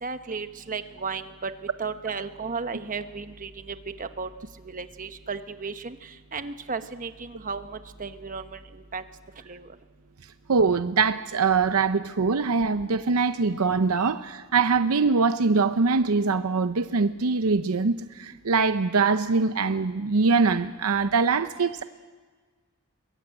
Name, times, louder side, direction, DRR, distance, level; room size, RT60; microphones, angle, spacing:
voice 1, 0.0-1.5 1.8-4.3 4.6-6.0 6.3-8.6 8.9-9.0 9.5-9.7 14.0-14.1, right 5 dB, 40° right, 9 dB, 1.1 m, -34 dB
voice 2, 10.5-21.8, right 4 dB, 80° right, 10 dB, 0.7 m, -23 dB
23.0 x 20.5 x 8.9 m, 1.4 s
head